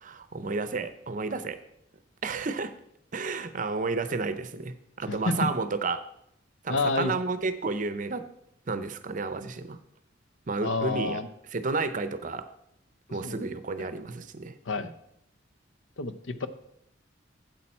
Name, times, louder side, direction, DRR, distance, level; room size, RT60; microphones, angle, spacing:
voice 1, 0.0-1.6 2.2-2.7 3.1-6.0 6.6-8.3 8.7-9.8 10.5-11.2 11.5-12.5 13.1-14.5, right 3 dB, 45° right, 12 dB, 0.6 m, -31 dB
voice 2, 5.1-5.5 6.7-7.1 10.6-11.3 13.2-13.4 14.7-14.9 16.0-16.5, left 3 dB, 85° left, 12 dB, 0.7 m, -29 dB
8.6 x 7.7 x 4.3 m, 0.75 s
head